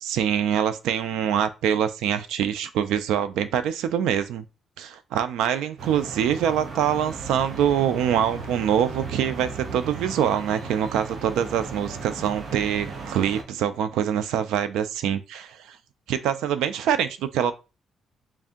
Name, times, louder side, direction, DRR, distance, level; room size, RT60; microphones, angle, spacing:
voice 1, 0.0-4.4 4.8-15.8 16.1-17.5, right 9 dB, 90° right, 0.4 m, -24 dB
sound 1, 5.8-13.4, right 4 dB, 55° right, 0.9 m, -36 dB
3.3 x 2.6 x 3.6 m
cardioid pair, 90°, 0 cm